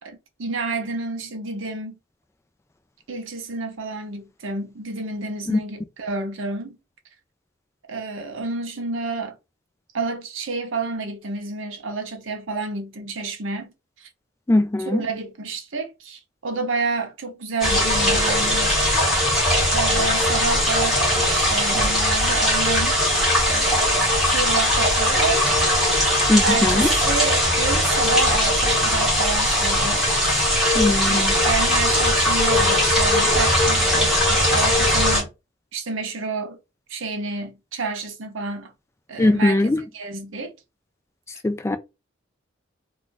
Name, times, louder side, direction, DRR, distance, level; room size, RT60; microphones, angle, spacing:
voice 1, 0.0-2.0 3.1-6.8 7.9-9.4 9.9-14.1 14.9-18.8 19.7-23.0 23.5-25.4 26.4-30.5 31.1-35.3 35.7-36.6 36.9-38.7 39.1-39.6 39.9-40.5, right 3 dB, 70° right, 0.7 m, -29 dB
voice 2, 14.5-15.0 26.3-26.9 30.7-31.3 39.2-39.8 41.4-41.8, left 1 dB, 15° left, 0.3 m, -20 dB
sound 1, 17.6-35.2, left 1 dB, ahead, 1.4 m, -20 dB
2.4 x 2.4 x 3.8 m
head